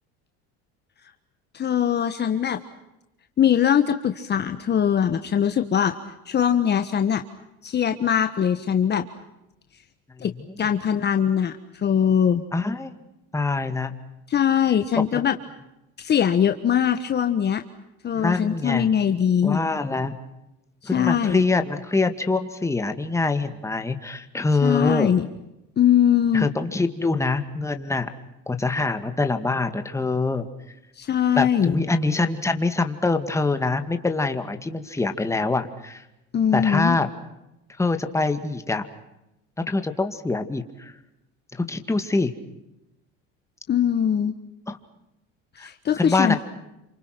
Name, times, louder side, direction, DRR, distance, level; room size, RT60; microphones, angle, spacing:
voice 1, 1.5-2.6 3.4-5.9 6.2-7.2 7.6-9.0 10.2-10.3 10.6-12.4 14.3-15.4 16.0-17.6 18.0-19.6 20.9-21.4 24.6-25.3 25.8-26.5 31.0-31.7 36.3-36.9 43.7-44.3 45.6-46.4, left 9 dB, 30° left, 7 dB, 1.5 m, -21 dB
voice 2, 12.5-13.0 13.3-13.9 15.1-15.2 18.2-18.9 19.4-20.1 20.8-25.1 26.3-28.1 28.5-30.5 31.4-36.0 36.5-37.1 37.8-38.9 39.7-40.9 41.5-42.3 44.7-44.8 45.6-45.7 46.0-46.4, left 3 dB, 10° left, 7 dB, 2.2 m, -24 dB
29.0 x 26.0 x 6.1 m, 0.90 s
supercardioid pair, 120°, 32 cm